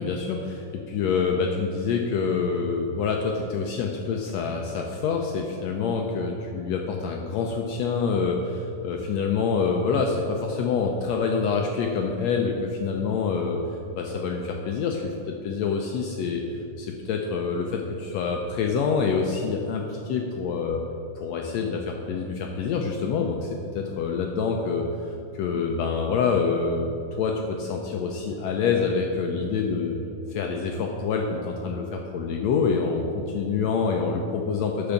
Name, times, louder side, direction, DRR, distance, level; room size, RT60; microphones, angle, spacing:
voice 1, 0.0-13.6 14.0-16.4 16.8-20.8 21.2-26.9 27.1-30.0 30.3-34.9, left 5 dB, 80° left, 2 dB, 1.5 m, -26 dB
10.5 x 4.6 x 7.1 m, 2.7 s
omnidirectional pair, 3.6 m